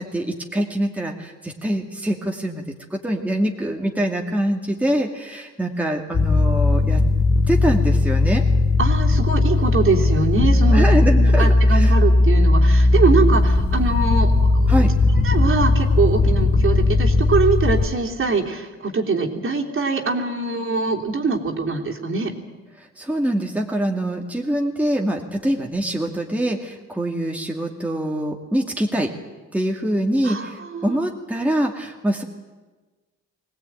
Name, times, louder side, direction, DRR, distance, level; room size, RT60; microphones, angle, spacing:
voice 1, 0.0-2.6 2.9-7.0 7.5-8.4 10.7-11.9 14.7-14.9 23.0-29.1 29.5-32.2, right 1 dB, 5° right, 1 dB, 2.3 m, -24 dB
sound 1, 6.1-17.9, left 2 dB, 45° left, 2.4 m, -17 dB
voice 2, 8.8-14.7 15.2-22.3 30.2-30.9, right 4 dB, 45° right, 0 dB, 3.4 m, -23 dB
22.0 x 17.5 x 9.1 m, 1.3 s
cardioid pair, 90°, 30 cm